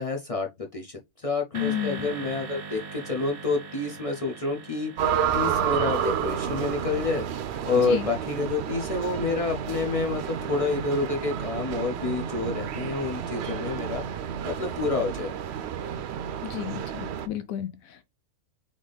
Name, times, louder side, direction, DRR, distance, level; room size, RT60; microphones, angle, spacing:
voice 1, 0.0-7.3 7.7-14.0 14.5-15.3, left 3 dB, 45° left, 0.5 m, -28 dB
voice 2, 1.5-2.1 7.8-8.1 16.4-18.0, left 12 dB, 75° left, 1.0 m, -32 dB
sound 1, 1.5-7.9, right 4 dB, 45° right, 1.0 m, -42 dB
sound 2, 5.0-17.3, right 8 dB, 65° right, 0.7 m, -30 dB
3.9 x 3.6 x 3.3 m
omnidirectional pair, 1.5 m